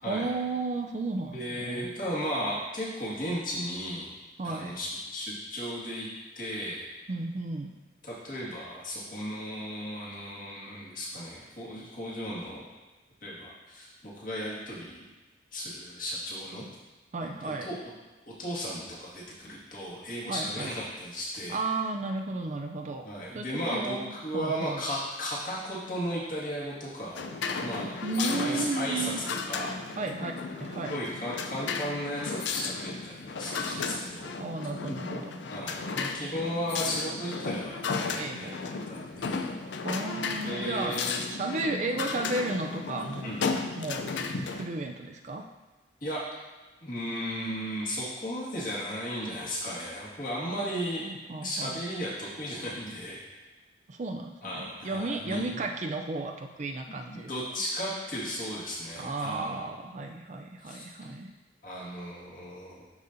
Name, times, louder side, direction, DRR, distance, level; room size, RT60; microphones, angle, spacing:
voice 1, 0.1-1.9 4.4-4.8 7.1-7.7 17.1-17.7 20.3-20.7 21.5-23.1 23.3-24.8 28.0-29.2 30.0-30.3 30.6-31.0 34.4-35.4 38.1-38.6 39.8-40.9 41.3-43.3 43.8-45.5 51.0-51.8 53.9-57.3 59.0-61.3, right 3 dB, 40° right, 4 dB, 0.4 m, -34 dB
voice 2, 1.3-4.1 4.4-6.1 6.4-6.9 8.0-12.7 13.2-15.1 15.5-16.6 17.4-17.8 18.4-21.6 23.0-27.3 27.6-29.1 29.5-29.7 30.8-34.3 35.5-38.5 38.9-39.5 40.4-41.3 43.2-43.4 44.1-44.2 46.0-46.2 46.8-51.1 51.4-53.2 54.4-55.6 57.1-59.6 60.6-60.9 61.6-62.8, equal, 45° left, -6 dB, 1.9 m, -35 dB
sound 1, 27.2-44.7, left 4 dB, 70° left, 0.4 m, -34 dB
11.5 x 4.1 x 2.6 m, 1.2 s
head